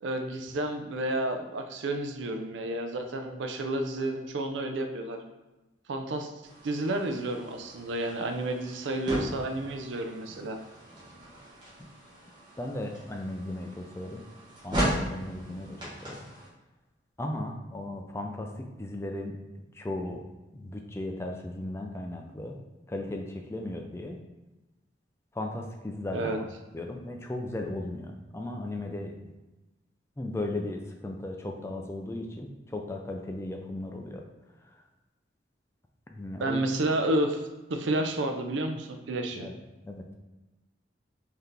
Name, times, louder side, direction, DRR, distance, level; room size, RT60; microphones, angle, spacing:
voice 1, 0.0-5.2 5.9-6.3 6.6-10.6 26.1-26.4 36.4-37.4 37.7-39.5, right 1 dB, 85° right, 5 dB, 0.5 m, -30 dB
sound 1, 6.4-16.5, equal, 25° right, 1.2 m, -37 dB
voice 2, 12.6-14.2 14.6-16.2 17.2-18.5 18.8-19.4 19.7-20.2 20.5-22.6 22.9-24.2 25.3-26.5 26.7-29.3 30.2-34.2 36.1-36.6 39.3-39.5 39.8-40.0, left 1 dB, 15° left, 2 dB, 0.3 m, -36 dB
3.9 x 2.8 x 3.3 m, 1.1 s
head